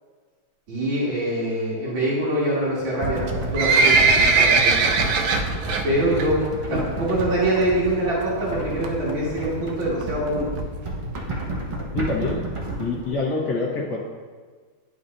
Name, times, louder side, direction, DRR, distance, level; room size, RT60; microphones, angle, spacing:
voice 1, 0.7-4.7 5.8-6.4 6.7-10.5, right 1 dB, 65° right, -7 dB, 2.7 m, -24 dB
sound 1, 3.0-13.1, right 1 dB, 30° right, 0.5 m, -31 dB
Livestock farm animals working animals, 3.2-5.8 6.2-6.5 6.8-6.9 7.6-7.7 7.9-8.0 8.2-8.3 8.8-9.1 9.7-9.8 10.0-10.1 10.3-10.4 10.6-10.7 11.1-11.2 11.7-11.8 12.3-12.4, right 4 dB, 85° right, 0.8 m, -19 dB
voice 2, 11.9-12.4 12.8-14.0, left 3 dB, 55° left, -7 dB, 1.6 m, -26 dB
10.5 x 5.5 x 2.6 m, 1.5 s
omnidirectional pair, 2.4 m